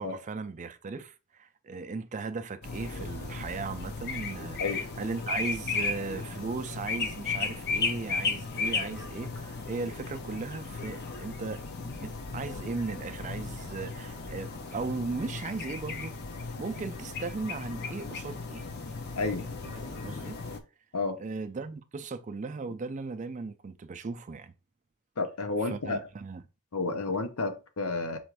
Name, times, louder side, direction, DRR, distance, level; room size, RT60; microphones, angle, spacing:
voice 1, 0.0-4.6 5.0-16.2 16.6-18.7 19.6-19.7 20.0-20.4 21.2-24.5 25.6-26.4, right 4 dB, 35° right, 0.4 m, -37 dB
sound 1, 2.6-20.6, left 4 dB, 45° left, 0.5 m, -35 dB
voice 2, 19.2-19.5 20.9-21.2 25.2-26.0 26.7-28.2, left 3 dB, 75° left, 0.8 m, -31 dB
4.2 x 2.5 x 4.6 m
head